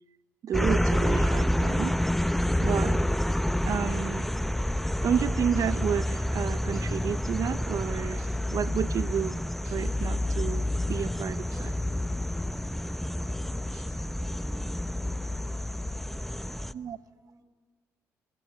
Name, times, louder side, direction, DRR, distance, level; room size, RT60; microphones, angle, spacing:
voice 1, 0.4-2.0 2.6-3.0 3.7-4.3 5.0-8.2 8.5-9.4 9.7-11.7 16.7-17.0, right 8 dB, 55° right, 16 dB, 0.8 m, -31 dB
sound 1, 0.5-16.7, left 1 dB, 5° left, 0.8 m, -28 dB
sound 2, 5.5-5.8 6.7-6.8 7.6-7.7 8.2-8.5 9.6-9.8 11.5-11.6 12.1-12.2 13.7-13.8 14.6-14.7, right 10 dB, 80° right, 6.8 m, -55 dB
voice 2, 16.3-17.5, right 2 dB, 25° right, -1 dB, 6.9 m, -61 dB
23.0 x 20.0 x 8.0 m, 1.4 s
hypercardioid pair, 60°, 7 cm